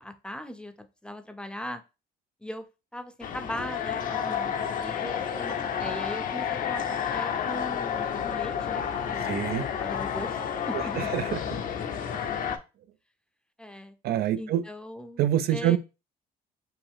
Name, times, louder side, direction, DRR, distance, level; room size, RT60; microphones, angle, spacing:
voice 1, 0.0-1.8 2.4-2.6 2.9-10.4 10.6-11.1 13.6-13.9 14.4-15.8, equal, 5° left, 0.6 m, -39 dB
sound 1, 3.2-12.6, left 8 dB, 55° left, 0.7 m, -30 dB
voice 2, 9.2-9.7 10.7-11.4 14.0-14.6 15.2-15.8, right 11 dB, 65° right, 0.4 m, -26 dB
5.5 x 2.5 x 3.5 m
cardioid pair, 110°, 17 cm